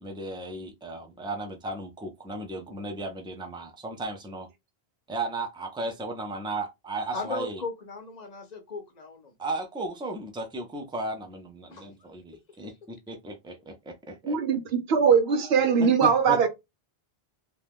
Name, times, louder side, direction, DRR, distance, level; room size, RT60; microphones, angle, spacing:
voice 1, 0.0-4.5 5.1-7.6 9.4-14.4 15.8-16.5, right 2 dB, 5° right, 0.4 m, -35 dB
voice 2, 7.1-9.3 11.7-11.9, left 3 dB, 50° left, 0.6 m, -36 dB
voice 3, 14.2-16.5, right 6 dB, 85° right, 0.9 m, -21 dB
2.6 x 2.2 x 3.3 m
omnidirectional pair, 1.0 m